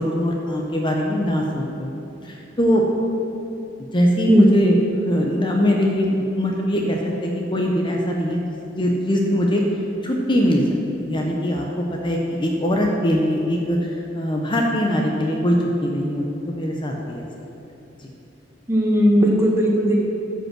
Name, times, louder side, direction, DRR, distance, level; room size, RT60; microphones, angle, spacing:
voice 1, 0.0-1.9 2.2-2.8 3.9-8.4 8.8-9.6 10.0-10.6 10.9-17.2 18.0-18.1, equal, 25° left, 0 dB, 0.8 m, -22 dB
voice 2, 4.3-4.6 18.7-20.0, equal, 15° right, -2 dB, 1.3 m, -17 dB
13.5 x 5.5 x 6.1 m, 2.9 s
head